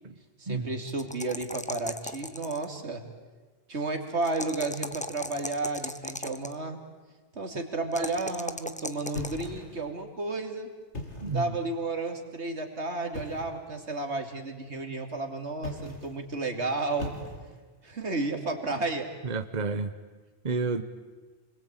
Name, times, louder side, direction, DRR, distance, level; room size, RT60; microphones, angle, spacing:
voice 1, 0.4-3.0 3.7-6.8 7.3-10.7 11.3-17.3 17.8-19.1, right 3 dB, 75° right, 5 dB, 3.0 m, -32 dB
sound 1, 0.9-2.8 4.2-6.5 7.9-9.5, left 1 dB, 5° left, 0.9 m, -37 dB
sound 2, 9.1-9.9 10.8-11.5 13.1-13.6 15.5-16.2 17.0-17.7, left 2 dB, 85° left, 4.0 m, -39 dB
voice 2, 11.2-11.6 19.2-19.9 20.4-20.8, right 4 dB, 40° right, 8 dB, 1.2 m, -30 dB
29.0 x 21.0 x 9.0 m, 1.3 s
omnidirectional pair, 1.2 m